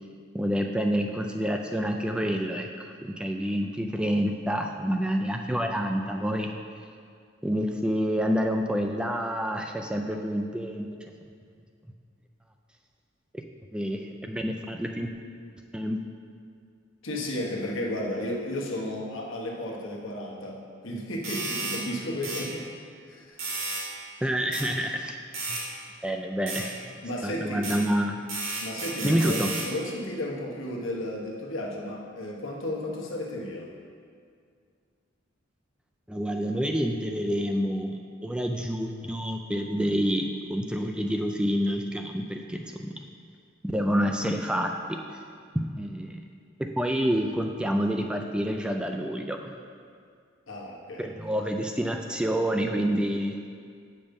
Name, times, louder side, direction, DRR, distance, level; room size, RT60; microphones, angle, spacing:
voice 1, 0.3-6.5 7.4-10.9 13.3-13.4 13.7-15.1 15.7-16.0 24.2-25.2 25.5-25.7 26.0-26.9 27.2-28.2 29.0-29.5 36.1-42.9 43.6-45.0 45.5-46.2 46.6-49.5 51.0-53.4, equal, 5° right, 3 dB, 0.3 m, -28 dB
voice 2, 17.0-22.7 23.1-23.4 27.0-27.7 28.6-33.7 50.5-51.1, left 1 dB, 75° left, -1 dB, 1.2 m, -33 dB
sound 1, 21.2-21.8 22.2-22.4 23.4-23.9 24.5-24.7 25.3-25.6 26.5-26.6 27.6-27.8 28.3-29.7, right 3 dB, 80° right, 2.2 m, -32 dB
8.1 x 5.3 x 5.2 m, 2.2 s
head